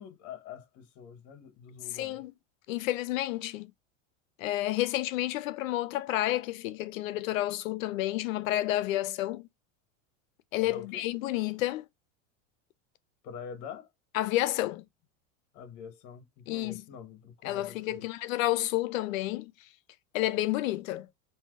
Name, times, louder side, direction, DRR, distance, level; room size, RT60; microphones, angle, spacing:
voice 1, 0.0-2.2 10.6-11.0 13.2-13.9 15.5-18.1, left 7 dB, 45° left, 1.2 m, -45 dB
voice 2, 1.9-2.3 2.7-3.7 4.4-9.5 10.5-11.8 14.1-14.8 16.5-16.8 17.4-19.5 20.1-21.1, left 16 dB, 85° left, 0.6 m, -30 dB
5.5 x 2.7 x 2.4 m
supercardioid pair, 140°, 39 cm